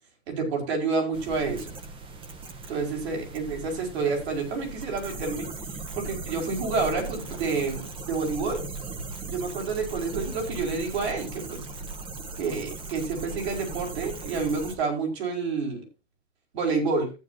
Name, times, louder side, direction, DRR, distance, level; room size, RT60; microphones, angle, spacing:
voice 1, 0.3-1.7 2.7-5.5 5.9-8.6 9.2-11.7 12.4-15.8 16.5-17.1, right 4 dB, 65° right, 1 dB, 5.4 m, -29 dB
sound 1, 1.1-14.7, right 3 dB, 15° right, 0.9 m, -38 dB
14.5 x 9.1 x 2.8 m, 0.29 s
hypercardioid pair, 150°, 34 cm